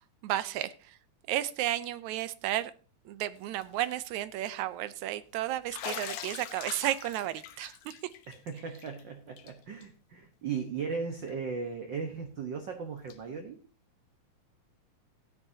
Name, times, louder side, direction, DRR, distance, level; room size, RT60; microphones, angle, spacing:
voice 1, 0.2-0.7 1.3-2.7 3.1-7.9, right 13 dB, 80° right, 2.0 m, -33 dB
Bathtub (filling or washing), 3.4-3.8 4.2-4.3 5.7-9.0 9.4-9.5 9.8-9.9 11.3-11.4 13.1-13.2, left 10 dB, 70° left, 2.0 m, -42 dB
voice 2, 8.3-13.6, right 5 dB, 55° right, 1.3 m, -37 dB
16.0 x 9.7 x 2.7 m
omnidirectional pair, 3.4 m